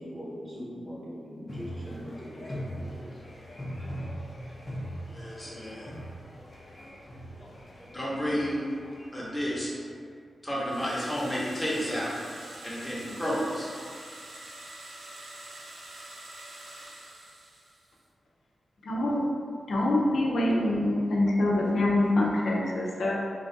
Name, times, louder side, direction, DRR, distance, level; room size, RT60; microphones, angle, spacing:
voice 1, 0.0-3.2, equal, 25° right, -7 dB, 0.9 m, -41 dB
sound 1, 1.5-9.9, equal, 35° left, 0.7 m, -41 dB
voice 2, 5.1-5.9 7.9-8.7 9.1-9.7 10.4-12.2 12.6-13.7, equal, 5° left, -7 dB, 0.8 m, -31 dB
sound 2, 10.6-18.0, right 1 dB, 90° right, 0.6 m, -45 dB
voice 3, 18.8-19.3 19.7-23.2, left 1 dB, 90° left, -3 dB, 0.5 m, -25 dB
3.1 x 2.4 x 3.8 m, 2.1 s
wide cardioid pair, 135°, 0 cm